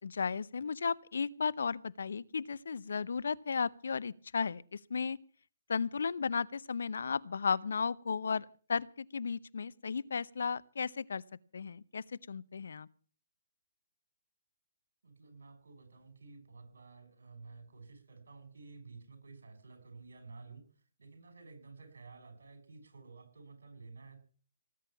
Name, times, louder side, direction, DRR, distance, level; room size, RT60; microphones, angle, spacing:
voice 1, 0.0-5.2 5.7-11.2 11.5-12.9, left 5 dB, 70° left, 19 dB, 0.8 m, -35 dB
voice 2, 15.0-24.2, right 4 dB, 75° right, 8 dB, 6.1 m, -53 dB
19.0 x 8.9 x 7.3 m, 0.41 s
hypercardioid pair, 135°, 0 cm